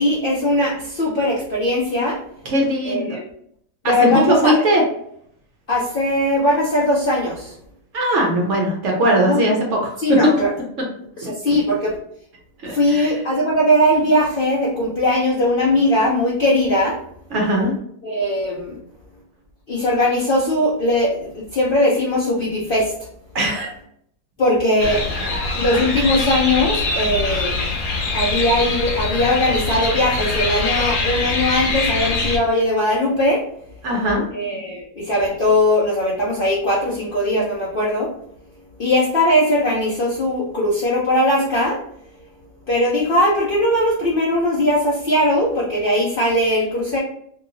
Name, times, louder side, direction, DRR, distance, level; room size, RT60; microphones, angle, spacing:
voice 1, 0.0-2.2 2.8-3.2 3.9-4.5 5.7-7.5 9.2-9.4 10.0-10.5 11.2-12.0 12.7-17.0 18.0-18.8 19.7-22.9 24.4-25.1 25.5-27.6 28.1-33.4 34.3-38.1 38.8-41.8 42.7-47.0, left 1 dB, 85° left, -6 dB, 0.4 m, -19 dB
voice 2, 2.4-3.2 3.8-4.8 7.9-9.8 10.1-10.3 11.2-11.3 12.6-13.2 17.3-17.7 23.3-23.7 24.8-25.3 25.9-26.1 33.8-34.2, equal, 60° right, -1 dB, 0.8 m, -19 dB
sound 1, 24.8-32.4, left 3 dB, 60° left, 0.9 m, -23 dB
2.9 x 2.7 x 2.7 m, 0.69 s
omnidirectional pair, 1.9 m